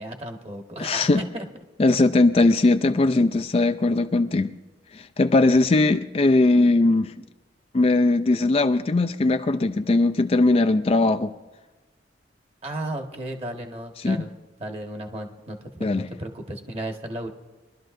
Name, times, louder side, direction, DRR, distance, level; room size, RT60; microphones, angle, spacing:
voice 1, 0.0-1.5 12.6-14.3 14.6-17.3, right 1 dB, 30° right, 1.3 m, -34 dB
voice 2, 0.8-1.2 1.8-4.5 4.9-7.1 7.7-11.3 14.0-14.2 15.8-16.0, left 2 dB, 30° left, 0.3 m, -20 dB
23.0 x 12.5 x 2.6 m
head